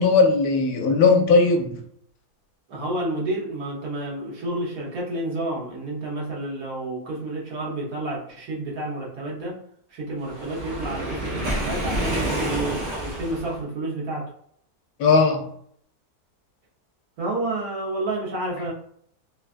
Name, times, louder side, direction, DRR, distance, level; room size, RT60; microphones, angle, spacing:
voice 1, 0.0-1.8 15.0-15.5, left 4 dB, 75° left, 3 dB, 1.1 m, -18 dB
voice 2, 2.7-9.6 9.9-14.3 17.2-18.7, right 2 dB, 70° right, -4 dB, 1.4 m, -30 dB
Waves surf, 10.3-13.6, right 1 dB, 45° right, 0.7 m, -28 dB
3.2 x 2.3 x 2.5 m, 0.64 s
omnidirectional pair, 1.6 m